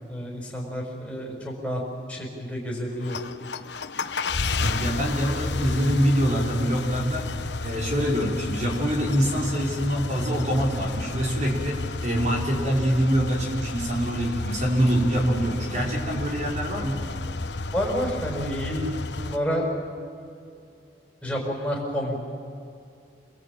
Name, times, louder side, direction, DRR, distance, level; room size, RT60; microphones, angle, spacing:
voice 1, 0.1-1.8 2.1-3.2 17.7-18.8 19.1-19.6 21.2-22.2, equal, 5° left, -4 dB, 6.0 m, -29 dB
sound 1, 2.9-19.4, left 3 dB, 75° left, 1.1 m, -32 dB
voice 2, 4.6-7.3 7.6-17.0, equal, 40° right, -1 dB, 5.5 m, -25 dB
28.0 x 22.0 x 9.0 m, 2.5 s
head